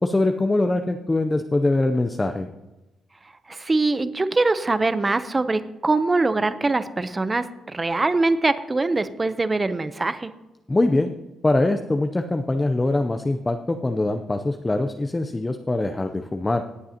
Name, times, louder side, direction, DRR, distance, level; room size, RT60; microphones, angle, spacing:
voice 1, 0.0-2.5 10.7-11.1 11.4-16.6, left 2 dB, 15° left, 6 dB, 0.5 m, -23 dB
voice 2, 3.5-10.3, right 3 dB, 20° right, 13 dB, 0.6 m, -23 dB
17.5 x 7.7 x 2.8 m, 1.0 s
cardioid pair, 105°, 0 cm